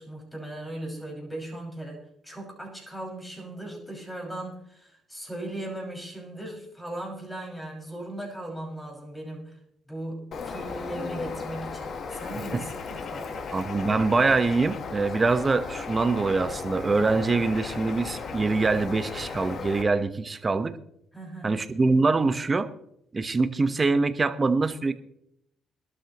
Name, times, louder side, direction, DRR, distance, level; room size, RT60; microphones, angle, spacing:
voice 1, 0.0-9.6 9.9-13.5 21.1-21.6, right 1 dB, 10° left, -1 dB, 5.9 m, -38 dB
Bird, 10.3-19.8, left 5 dB, 60° left, 1.3 m, -36 dB
voice 2, 13.5-20.8 21.4-22.7 23.1-24.9, right 3 dB, 30° right, 10 dB, 1.1 m, -24 dB
20.5 x 12.5 x 3.0 m, 0.74 s
cardioid pair, 90°, 0 cm